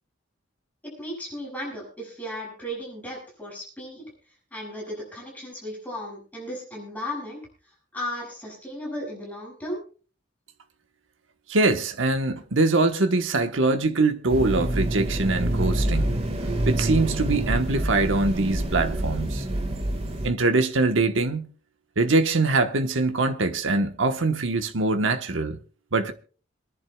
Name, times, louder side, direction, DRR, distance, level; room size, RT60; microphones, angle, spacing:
voice 1, 0.8-4.1 4.5-7.4 7.9-9.8, equal, 10° left, 6.9 m, -35 dB
voice 2, 11.5-16.2 16.6-19.4 20.2-21.5 22.0-25.6 25.9-26.1, right 3 dB, 75° right, 1.1 m, -23 dB
sound 1, 14.3-20.3, right 1 dB, 30° right, 1.7 m, -26 dB
27.0 x 11.0 x 2.3 m
head